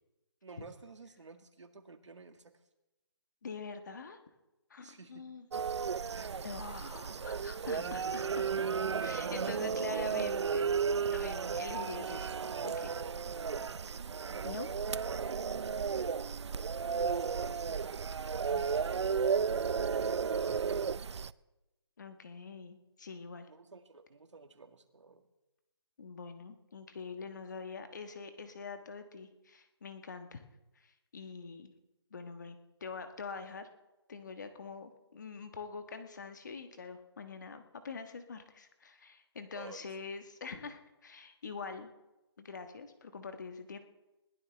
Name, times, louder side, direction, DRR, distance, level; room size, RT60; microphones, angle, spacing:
voice 1, 0.4-2.5 4.8-5.3 6.1-7.3 7.7-8.3 13.5-13.7 14.4-14.6 15.1-15.7 17.3-18.6 19.8-20.5 20.8-21.0 23.5-25.3 39.6-39.8, right 4 dB, 90° right, 6 dB, 2.0 m, -51 dB
voice 2, 3.4-4.2 4.7-5.5 6.3-8.7 9.0-10.7 11.1-12.3 12.6-12.9 14.4-14.7 18.5-18.6 22.0-23.5 26.0-30.4 30.8-31.7 32.1-33.7 34.1-41.9 42.4-43.8, left 5 dB, 40° left, 7 dB, 1.4 m, -45 dB
sound 1, 5.5-21.3, right 6 dB, 75° right, 0.5 m, -34 dB
21.0 x 15.5 x 3.4 m, 1.0 s
hypercardioid pair, 175°, 15 cm